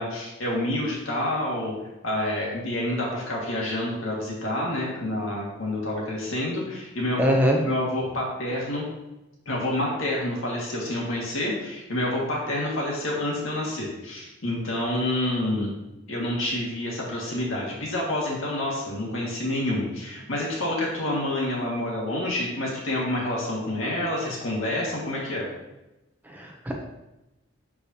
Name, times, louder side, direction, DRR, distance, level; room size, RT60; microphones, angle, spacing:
voice 1, 0.0-1.7 2.0-7.3 7.6-8.8 9.4-15.7 16.1-25.5, left 1 dB, 75° left, -3 dB, 1.8 m, -28 dB
voice 2, 7.2-7.6 26.3-26.7, equal, 10° right, 0 dB, 0.5 m, -22 dB
6.8 x 4.9 x 2.8 m, 0.97 s
head